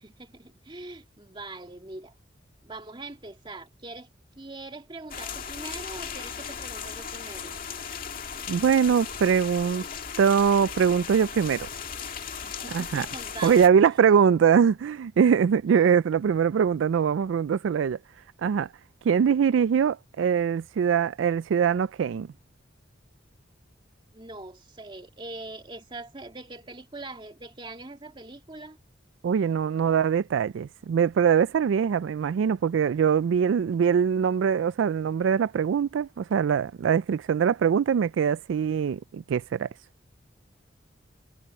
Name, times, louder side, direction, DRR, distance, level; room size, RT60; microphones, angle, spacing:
voice 1, 0.0-2.1 2.6-4.1 4.4-7.6 12.4-13.7 14.2-14.3 24.1-28.8, right 2 dB, 25° right, 2.0 m, -42 dB
sound 1, 5.1-13.7, left 7 dB, 50° left, 2.1 m, -37 dB
voice 2, 8.5-9.8 10.2-11.7 12.7-13.1 13.4-18.0 18.4-18.7 19.0-22.3 29.2-39.7, right 7 dB, 85° right, 0.3 m, -22 dB
head